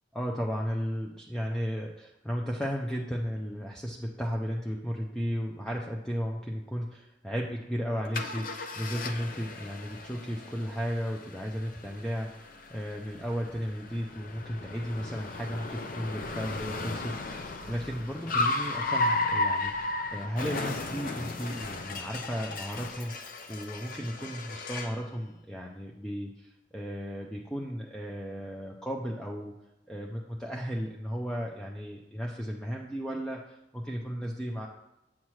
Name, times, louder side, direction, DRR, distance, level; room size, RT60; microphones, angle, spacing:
voice 1, 0.1-29.5 29.9-34.7, equal, 5° left, -1 dB, 0.5 m, -35 dB
Car, 8.1-25.0, left 2 dB, 50° left, 0.6 m, -35 dB
7.4 x 5.9 x 3.1 m, 0.95 s
head